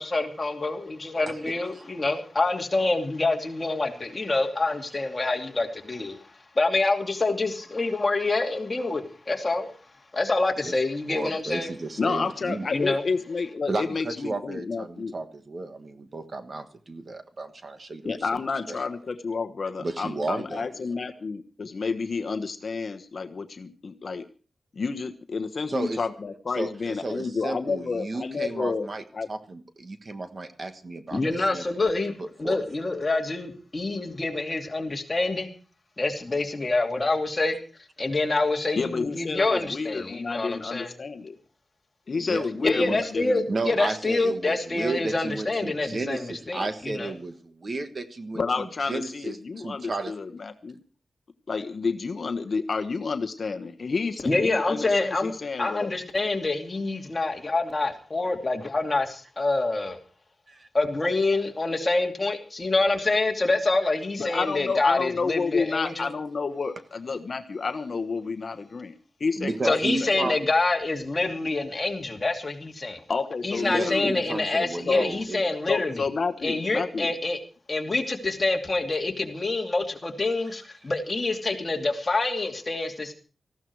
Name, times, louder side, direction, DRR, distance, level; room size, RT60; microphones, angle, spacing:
voice 1, 0.0-6.2 6.5-9.7 10.1-11.7 12.7-13.0 31.1-35.5 36.0-37.6 38.0-40.9 42.6-47.1 54.2-55.3 55.6-60.0 60.7-66.1 69.6-73.0 73.4-76.0 76.4-77.4 77.7-83.1, left 2 dB, 25° left, 2 dB, 2.7 m, -26 dB
voice 2, 11.1-12.7 13.7-18.0 18.7-18.8 19.8-20.7 25.7-26.0 26.6-29.0 29.3-31.2 31.5-31.6 32.2-32.6 42.2-42.5 42.8-43.0 43.5-50.1 60.5-60.7 65.9-66.0 69.4-70.4 73.6-75.4, right 3 dB, 40° right, 9 dB, 1.4 m, -33 dB
voice 3, 12.0-15.1 18.0-24.2 24.7-28.9 29.1-29.3 38.7-41.4 42.1-43.8 48.3-50.8 51.5-55.9 64.2-68.9 69.2-70.3 73.1-74.2 74.9-75.1 75.7-77.1, left 4 dB, 50° left, 8 dB, 1.2 m, -30 dB
19.0 x 15.0 x 4.7 m, 0.38 s
wide cardioid pair, 160°, 0 cm